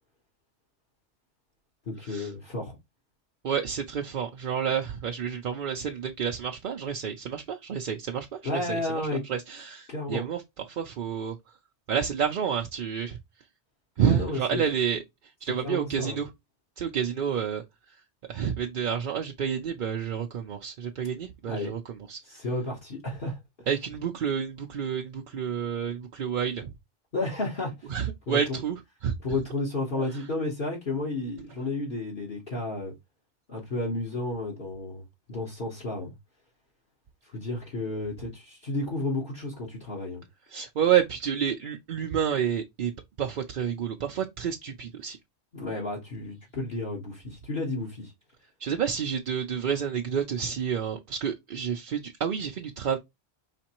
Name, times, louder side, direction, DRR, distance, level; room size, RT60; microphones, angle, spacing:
voice 1, 1.9-2.8 8.4-9.2 9.9-10.2 14.0-14.6 15.6-16.2 21.5-21.7 22.2-23.4 27.1-27.9 28.3-28.6 29.2-32.9 33.5-35.0 35.3-36.1 37.3-40.2 45.5-48.1, left 2 dB, 50° left, 1.4 m, -32 dB
voice 2, 3.4-10.4 10.7-11.4 11.9-13.2 14.0-15.0 15.4-16.3 16.8-17.6 18.3-22.2 23.7-26.7 27.9-29.1 30.0-30.2 40.5-42.9 43.2-45.2 48.6-53.0, right 8 dB, 55° right, 0.7 m, -29 dB
5.1 x 3.2 x 3.0 m
omnidirectional pair, 1.2 m